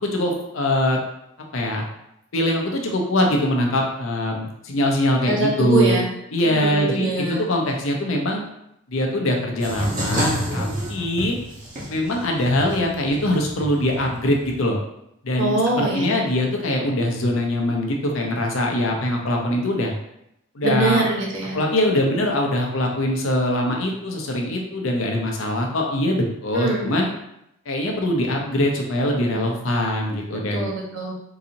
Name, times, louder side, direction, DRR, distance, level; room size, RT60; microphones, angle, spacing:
voice 1, 0.0-1.0 1.5-1.8 2.3-6.0 6.3-8.4 8.9-11.4 11.9-14.8 15.2-19.9 20.5-21.1 21.5-27.1 27.7-30.7, left 1 dB, 70° left, 1 dB, 0.6 m, -22 dB
voice 2, 5.3-6.1 6.4-7.5 15.4-16.3 20.6-21.6 26.5-26.9 29.3-29.4 30.5-31.1, right 2 dB, 60° right, -3 dB, 1.0 m, -23 dB
sound 1, 9.6-14.6, equal, 40° right, 1.1 m, -29 dB
3.9 x 2.9 x 2.6 m, 0.80 s
head